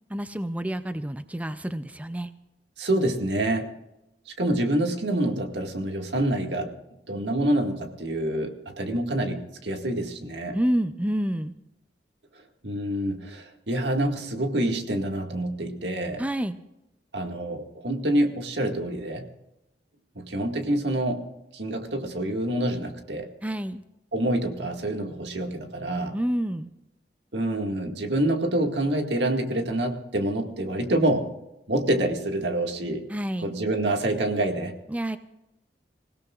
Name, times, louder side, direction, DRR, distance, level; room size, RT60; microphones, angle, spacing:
voice 1, 0.1-2.3 10.5-11.5 16.2-16.6 23.4-23.8 26.1-26.7 33.1-33.5 34.9-35.2, right 1 dB, 10° right, 10 dB, 0.5 m, -28 dB
voice 2, 2.8-3.7 4.3-6.7 7.1-10.6 12.6-16.2 17.1-19.3 20.2-21.2 21.5-23.3 24.1-26.2 27.3-31.3 31.7-33.0 33.4-34.8, right 1 dB, 75° right, 3 dB, 2.0 m, -27 dB
26.0 x 17.0 x 2.4 m, 0.92 s
head